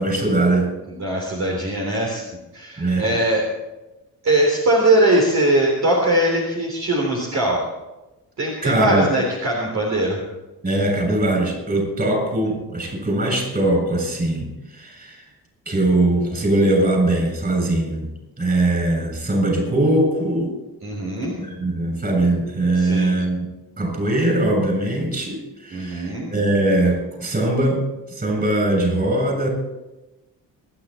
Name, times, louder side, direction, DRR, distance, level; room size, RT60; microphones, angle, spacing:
voice 1, 0.0-0.7 2.8-3.1 8.6-9.1 10.6-15.2 15.7-18.1 18.4-20.5 21.4-23.5 23.8-29.5, right 1 dB, 25° right, 1 dB, 7.1 m, -21 dB
voice 2, 0.9-2.2 2.5-3.4 4.2-7.7 8.4-10.2 20.8-21.4 22.8-23.2 25.7-26.3, right 1 dB, 45° right, -2 dB, 3.6 m, -21 dB
25.0 x 10.0 x 4.4 m, 1.0 s
cardioid pair, 105°, 37 cm